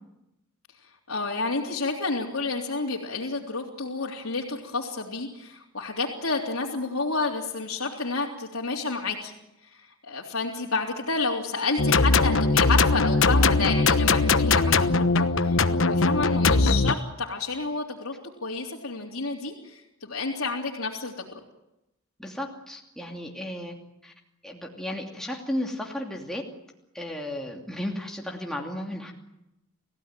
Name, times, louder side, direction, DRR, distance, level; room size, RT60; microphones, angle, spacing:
voice 1, 1.1-9.3 9.6-18.2 18.4-21.4, left 3 dB, 85° left, -4 dB, 3.4 m, -30 dB
sound 1, 11.8-16.9, left 3 dB, 65° left, 1.2 m, -20 dB
voice 2, 22.2-23.8 24.0-24.1 24.4-26.4 26.9-29.1, left 1 dB, ahead, 0 dB, 2.7 m, -34 dB
29.5 x 16.5 x 9.2 m, 0.90 s
head